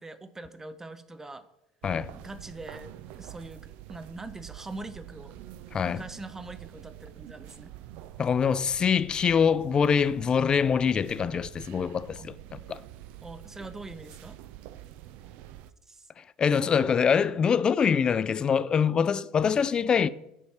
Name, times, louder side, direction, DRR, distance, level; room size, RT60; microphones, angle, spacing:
voice 1, 0.0-1.4 2.1-2.9 3.2-5.4 5.8-7.8 12.1-12.3 13.2-14.4 15.9-16.1, right 2 dB, 15° right, 0.6 m, -43 dB
sound 1, 1.8-15.7, right 13 dB, 60° right, 0.4 m, -46 dB
voice 2, 5.7-6.0 8.2-12.8 16.2-20.1, left 7 dB, 30° left, 0.3 m, -24 dB
6.4 x 3.3 x 5.6 m
hypercardioid pair, 70°, 3 cm